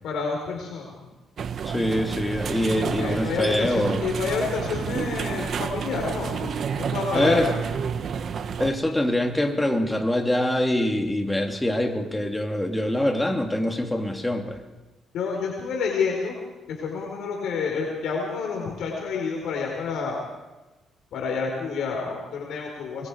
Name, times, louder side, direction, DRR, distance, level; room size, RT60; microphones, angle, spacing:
voice 1, 0.0-1.1 3.0-7.4 15.1-16.4 16.7-20.1 21.1-23.1, left 5 dB, 75° left, 0 dB, 4.2 m, -29 dB
sound 1, 1.4-8.7, right 7 dB, 60° right, 1.3 m, -30 dB
voice 2, 1.6-4.0 7.1-7.5 8.6-14.6, left 1 dB, 10° left, 4 dB, 2.8 m, -24 dB
25.0 x 21.5 x 4.8 m, 1.1 s
cardioid pair, 90°, 0 cm